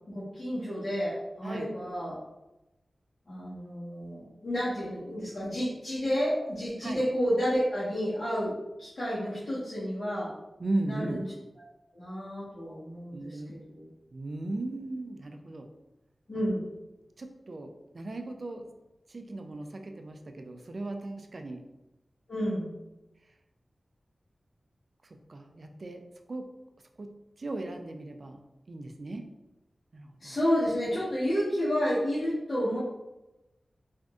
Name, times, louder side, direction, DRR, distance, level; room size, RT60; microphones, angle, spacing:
voice 1, 0.1-2.2 3.3-8.5 8.8-10.3 10.8-11.2 11.9-13.4 13.7-13.9 16.3-16.7 22.3-22.8 30.2-32.8, equal, 50° left, -12 dB, 1.1 m, -30 dB
voice 2, 10.6-11.2 13.1-13.5 14.1-15.7 17.2-18.7 19.1-21.6 25.0-26.0 26.3-26.5 27.0-27.1 27.4-28.4 28.7-29.3 29.9-30.4, right 2 dB, 55° right, 5 dB, 0.3 m, -37 dB
3.6 x 2.5 x 2.3 m, 0.99 s
wide cardioid pair, 70°, 0 cm